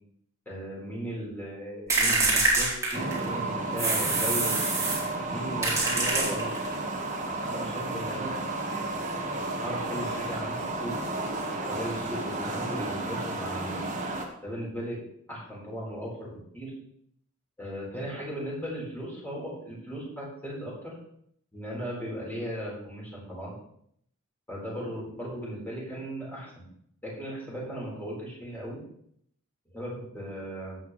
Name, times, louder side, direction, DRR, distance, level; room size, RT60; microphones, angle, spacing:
voice 1, 0.5-4.5 5.3-6.6 7.2-8.3 9.6-11.0 11.6-13.8 14.4-15.0 15.3-16.7 17.6-21.0 21.5-23.6 24.5-26.7 27.0-28.8 29.7-30.8, equal, 10° left, -5 dB, 4.2 m, -37 dB
sound 1, 1.9-3.3 3.8-5.1 5.6-6.7, right 3 dB, 15° right, 2.9 m, -25 dB
sound 2, 2.9-14.3, right 2 dB, 35° right, 1.5 m, -32 dB
14.0 x 8.1 x 3.2 m, 0.69 s
head